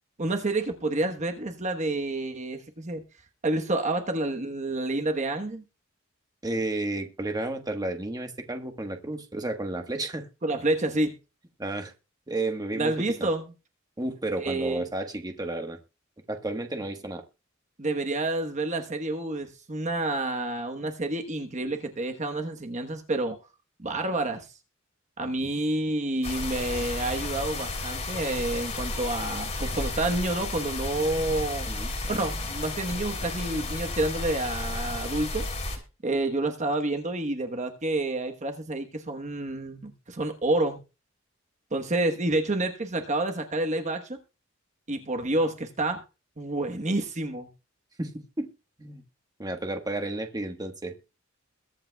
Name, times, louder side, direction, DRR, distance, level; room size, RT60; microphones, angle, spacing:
voice 1, 0.2-3.0 3.4-5.6 10.4-11.1 12.7-13.5 14.4-14.8 17.8-23.4 23.8-24.5 25.2-31.7 32.1-35.5 36.0-40.8 41.7-44.2 44.9-46.0 46.4-47.5, right 2 dB, 35° right, 1.1 m, -29 dB
voice 2, 6.4-10.3 11.6-11.9 12.3-12.9 13.2-13.3 14.0-15.8 16.3-17.2 31.7-31.9 48.0-48.5 48.8-49.0 49.4-50.9, right 2 dB, 20° right, 1.3 m, -32 dB
sound 1, 26.2-35.8, left 2 dB, 35° left, 3.2 m, -33 dB
22.0 x 8.5 x 2.3 m
head